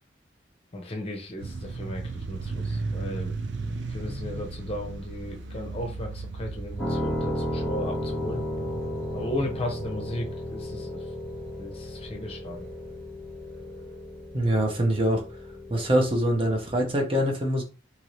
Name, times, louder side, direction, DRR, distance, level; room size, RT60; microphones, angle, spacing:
voice 1, 0.7-3.3 3.9-8.4 9.1-11.0 11.6-12.7, left 1 dB, 30° left, 2 dB, 0.7 m, -35 dB
sound 1, 1.4-14.5, right 3 dB, 75° right, 0.5 m, -37 dB
Piano, 6.8-16.9, equal, 5° left, 0.9 m, -34 dB
voice 2, 14.3-15.2 15.7-17.6, right 1 dB, 30° right, 1 dB, 0.6 m, -24 dB
2.9 x 2.7 x 3.1 m, 0.33 s
head